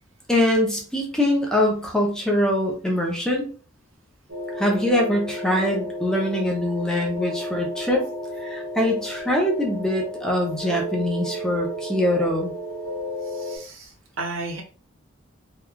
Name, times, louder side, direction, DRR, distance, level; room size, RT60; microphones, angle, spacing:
voice 1, 0.3-3.4 4.6-8.0 8.4-12.5, left 1 dB, 5° left, -1 dB, 0.5 m, -23 dB
sound 1, 4.3-13.6, equal, 60° right, 1.1 m, -33 dB
voice 2, 13.2-14.6, right 3 dB, 75° right, 2 dB, 0.8 m, -34 dB
3.0 x 2.2 x 2.3 m, 0.38 s
head